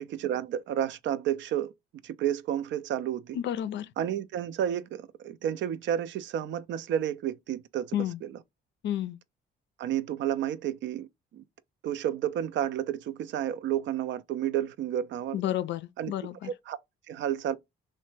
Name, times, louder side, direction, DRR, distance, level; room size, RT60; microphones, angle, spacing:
voice 1, 0.0-1.7 2.0-3.4 4.0-8.3 9.8-11.1 11.3-11.4 11.8-15.4 16.0-16.1 16.4-16.8 17.1-17.6, right 10 dB, 70° right, 0.4 m, -31 dB
voice 2, 3.3-3.9 7.9-8.2 8.8-9.2 15.3-16.5, left 11 dB, 65° left, 0.4 m, -31 dB
3.2 x 2.1 x 3.1 m
cardioid pair, 90°, 20 cm